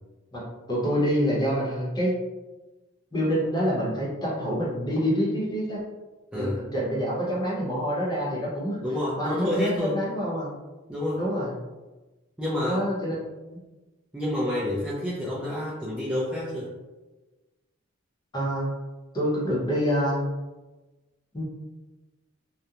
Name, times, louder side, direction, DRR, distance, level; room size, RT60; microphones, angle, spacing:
voice 1, 0.7-2.2 3.1-5.8 6.3-8.8 9.2-10.5 11.2-11.5 12.6-13.2 13.5-13.6 18.3-18.7 19.1-20.2 21.3-21.4, equal, 20° left, -6 dB, 0.8 m, -26 dB
voice 2, 8.8-10.0 10.9-11.2 12.4-12.8 14.1-16.7, left 1 dB, 5° right, -9 dB, 0.4 m, -28 dB
2.8 x 2.1 x 2.4 m, 1.2 s
head